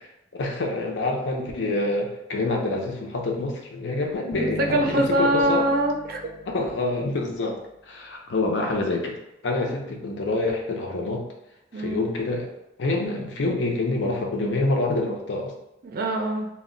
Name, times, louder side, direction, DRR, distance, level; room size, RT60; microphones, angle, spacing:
voice 1, 0.4-5.7 6.5-7.6 7.9-9.2 9.4-11.3 11.7-12.5 12.8-15.5, left 2 dB, 85° left, 1 dB, 0.5 m, -26 dB
Bass guitar, 4.3-7.4, left 1 dB, 20° left, 0.4 m, -39 dB
voice 2, 4.4-6.2 11.7-12.0 15.8-16.5, right 1 dB, 55° right, 2 dB, 0.4 m, -23 dB
2.1 x 2.1 x 3.6 m, 0.88 s
head